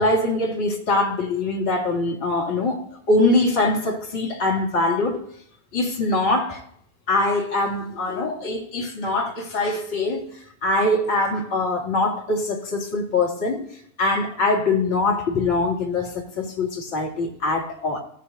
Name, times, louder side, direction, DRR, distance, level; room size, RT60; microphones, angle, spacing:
voice 1, 0.0-2.8 3.1-5.2 5.7-6.6 7.1-10.3 10.6-13.7 14.0-18.0, left 2 dB, 50° left, 2.5 m, -23 dB
16.5 x 7.7 x 2.7 m
figure-of-eight pair, 90°, 0 cm